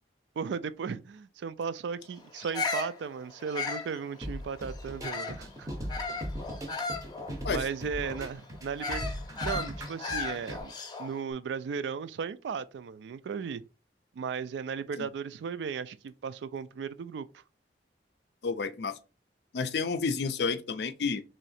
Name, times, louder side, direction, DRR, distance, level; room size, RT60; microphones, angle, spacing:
voice 1, 0.4-5.7 7.5-9.1 9.4-10.7 11.0-13.6 14.2-17.3, right 6 dB, 80° right, 0.3 m, -36 dB
Bird vocalization bird call bird song, 2.3-5.5 5.9-11.2, left 4 dB, 25° left, 0.6 m, -36 dB
sound 1, 4.2-10.6, equal, 20° right, 0.6 m, -39 dB
voice 2, 18.4-19.0 19.5-21.2, left 5 dB, 65° left, 0.4 m, -30 dB
3.1 x 2.7 x 4.1 m
head